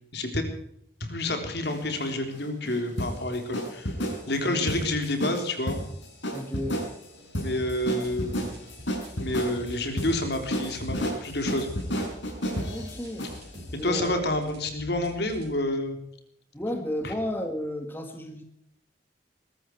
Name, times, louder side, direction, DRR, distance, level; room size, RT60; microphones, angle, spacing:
voice 1, 0.1-0.5 1.0-3.9 4.3-5.8 7.4-8.5 9.2-11.7 13.8-16.0 17.0-17.1, left 1 dB, 60° left, 5 dB, 3.6 m, -29 dB
sound 1, 1.6-13.6, equal, 80° left, 6.2 m, -32 dB
voice 2, 6.3-6.9 12.7-13.4 13.7-14.1 16.5-18.4, left 1 dB, 10° left, 4 dB, 1.8 m, -33 dB
sound 2, 7.5-15.5, equal, 60° right, 5.8 m, -46 dB
22.0 x 13.0 x 4.6 m, 0.74 s
head